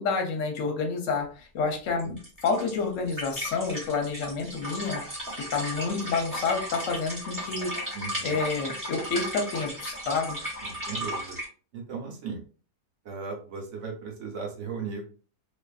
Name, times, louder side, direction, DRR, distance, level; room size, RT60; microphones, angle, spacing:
voice 1, 0.0-2.2 2.4-5.0 5.5-7.7 8.2-10.4, left 4 dB, 60° left, 2 dB, 0.9 m, -29 dB
sound 1, 2.0-11.5, equal, 15° right, 0.9 m, -35 dB
voice 2, 7.9-8.4 10.7-11.4 11.7-12.4 13.1-15.1, right 5 dB, 60° right, 1 dB, 0.9 m, -36 dB
2.5 x 2.5 x 2.3 m, 0.39 s
omnidirectional pair, 1.6 m